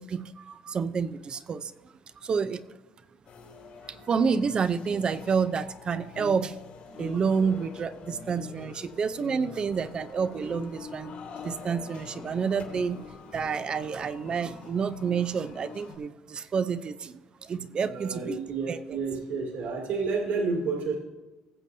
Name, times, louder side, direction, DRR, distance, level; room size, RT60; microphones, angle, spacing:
voice 1, 0.0-1.7 2.2-2.7 3.9-6.6 6.9-11.1 11.4-13.0 13.3-18.4 18.7-18.8, right 6 dB, 30° right, 13 dB, 0.6 m, -29 dB
sound 1, 3.3-16.0, left 5 dB, 55° left, 2.4 m, -45 dB
voice 2, 17.8-20.9, right 4 dB, 70° right, 0 dB, 2.5 m, -30 dB
20.0 x 7.9 x 2.7 m, 1.2 s
cardioid pair, 140°, 3 cm